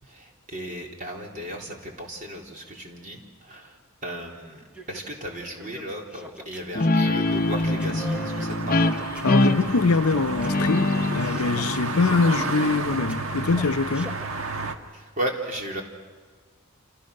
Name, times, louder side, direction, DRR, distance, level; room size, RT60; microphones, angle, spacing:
voice 1, 0.0-8.9 14.9-15.8, right 1 dB, 35° right, 3.8 m, -35 dB
sound 1, 4.6-14.3, right 1 dB, 5° right, 1.3 m, -43 dB
Guitar, 6.7-13.9, left 2 dB, 40° left, 0.8 m, -25 dB
sound 2, 7.2-14.8, right 3 dB, 70° right, 1.6 m, -32 dB
voice 2, 9.2-14.2, left 4 dB, 80° left, 0.7 m, -23 dB
29.5 x 27.5 x 6.6 m
head